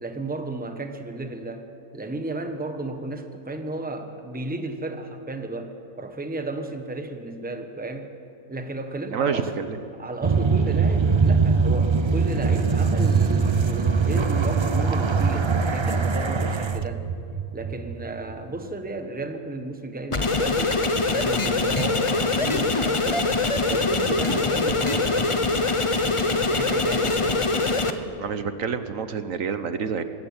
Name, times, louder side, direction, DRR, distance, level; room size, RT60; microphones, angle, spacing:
voice 1, 0.0-1.7 1.9-8.1 8.5-9.5 10.0-17.1 17.5-23.3 23.7-27.5, right 2 dB, 5° right, 6 dB, 1.1 m, -34 dB
voice 2, 9.1-9.8 28.2-30.0, right 6 dB, 70° right, 10 dB, 1.3 m, -28 dB
sound 1, 10.2-18.4, right 5 dB, 45° right, 0.3 m, -22 dB
sound 2, 20.1-27.9, left 3 dB, 25° left, 0.8 m, -23 dB
21.0 x 16.0 x 8.8 m, 2.7 s
omnidirectional pair, 1.5 m